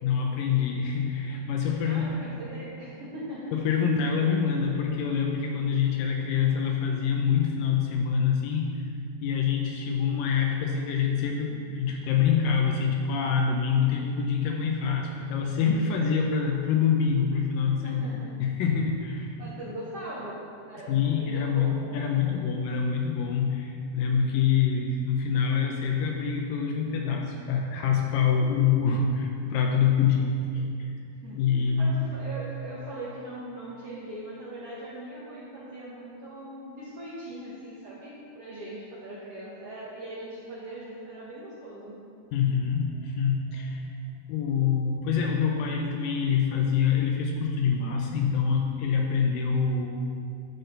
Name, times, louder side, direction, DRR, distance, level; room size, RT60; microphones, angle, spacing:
voice 1, 0.0-2.1 3.5-8.8 9.2-18.1 18.4-19.3 20.9-30.7 31.3-31.9 42.3-43.9 44.3-49.9, left 6 dB, 80° left, 1 dB, 2.2 m, -25 dB
voice 2, 1.8-3.4 17.8-18.3 19.4-20.4 20.7-21.8 22.1-22.4 24.3-24.5 31.2-41.9, right 1 dB, 65° right, -9 dB, 1.5 m, -40 dB
12.0 x 4.2 x 3.9 m, 2.4 s
omnidirectional pair, 4.2 m